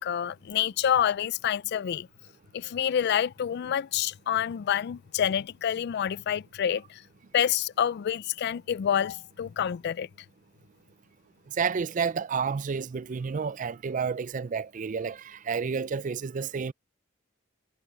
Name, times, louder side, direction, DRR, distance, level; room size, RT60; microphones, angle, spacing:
voice 1, 0.0-2.1 2.5-7.0 7.3-10.1, left 9 dB, 55° left, 0.3 m, -27 dB
voice 2, 11.6-16.7, right 6 dB, 40° right, 0.4 m, -30 dB
head